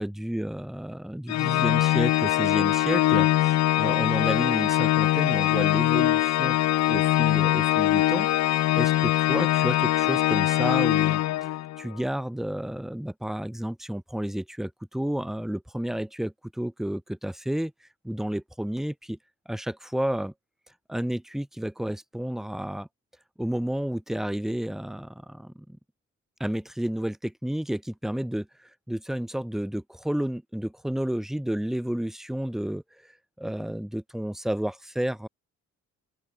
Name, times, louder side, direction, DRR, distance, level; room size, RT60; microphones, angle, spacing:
voice 1, 0.0-6.6 6.9-11.5 11.8-17.7 18.0-19.2 19.5-20.3 20.9-22.9 23.4-25.8 26.4-32.8 33.4-35.3, right 1 dB, ahead, 0.5 m, -31 dB
Organ, 1.3-11.9, left 15 dB, 60° left, 0.5 m, -22 dB
open air
cardioid pair, 90°, 30 cm